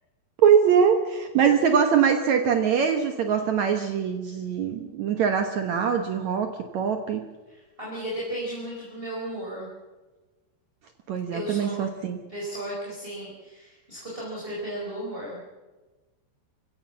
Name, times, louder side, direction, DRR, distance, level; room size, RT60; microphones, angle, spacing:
voice 1, 0.4-7.2 11.1-12.2, right 7 dB, 90° right, 6 dB, 1.5 m, -22 dB
voice 2, 7.5-9.7 11.3-11.7 12.3-15.4, right 1 dB, 10° right, -4 dB, 4.8 m, -35 dB
25.0 x 16.5 x 7.4 m, 1.2 s
omnidirectional pair, 5.1 m